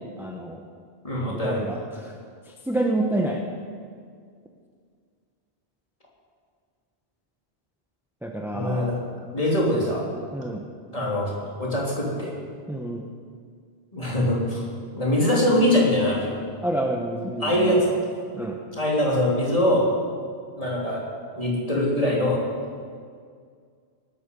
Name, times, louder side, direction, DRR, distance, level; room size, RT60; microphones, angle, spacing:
voice 1, 0.2-0.6 1.3-2.1 2.7-3.4 8.2-8.9 10.3-10.6 12.7-13.0 16.6-17.7 18.4-18.6, right 1 dB, ahead, 1 dB, 1.1 m, -28 dB
voice 2, 1.0-1.6 8.5-9.0 9.3-10.0 10.9-11.3 11.6-12.4 13.9-14.7 15.0-16.4 17.4-17.9 18.7-19.8 20.6-21.0 21.4-22.4, left 1 dB, 35° left, -4 dB, 3.5 m, -23 dB
19.0 x 12.5 x 5.5 m, 2.1 s
omnidirectional pair, 1.1 m